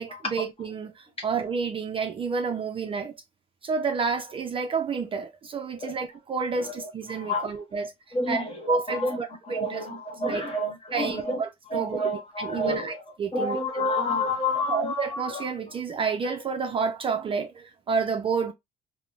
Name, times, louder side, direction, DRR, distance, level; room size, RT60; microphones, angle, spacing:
voice 1, 0.0-3.1 3.6-8.4 8.7-9.8 10.3-10.4 10.9-12.1 12.4-12.9 13.2-13.6 14.7-18.5, right 5 dB, 30° right, 0.4 m, -30 dB
voice 2, 7.1-7.6 8.1-9.2 9.4-11.4 11.7-13.0 13.3-15.4, left 1 dB, 35° left, 1.2 m, -29 dB
3.5 x 2.0 x 2.2 m
cardioid pair, 110°, 17 cm